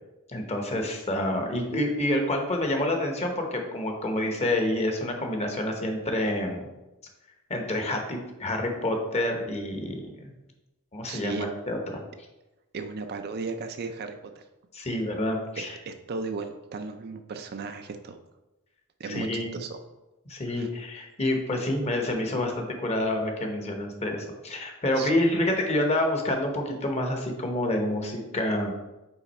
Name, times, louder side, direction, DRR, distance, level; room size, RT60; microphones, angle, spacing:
voice 1, 0.3-6.7 7.5-10.3 10.9-12.0 14.7-15.8 19.0-19.6 20.3-28.7, left 1 dB, 30° left, 3 dB, 0.9 m, -28 dB
voice 2, 11.1-11.5 12.7-14.4 15.6-18.2 19.0-19.8 20.5-20.7 25.0-25.1, right 4 dB, 45° right, 7 dB, 0.4 m, -35 dB
5.7 x 4.0 x 4.1 m, 1.0 s
head